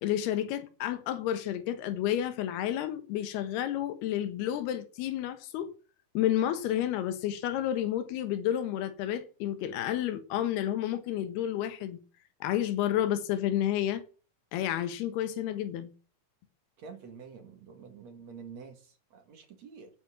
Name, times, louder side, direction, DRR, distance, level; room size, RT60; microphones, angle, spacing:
voice 1, 0.0-5.7 6.2-12.0 12.4-14.0 14.5-15.9, left 11 dB, 85° left, 3.3 m, -30 dB
voice 2, 16.8-19.9, right 6 dB, 50° right, 2.8 m, -48 dB
10.0 x 8.8 x 7.4 m
omnidirectional pair, 4.5 m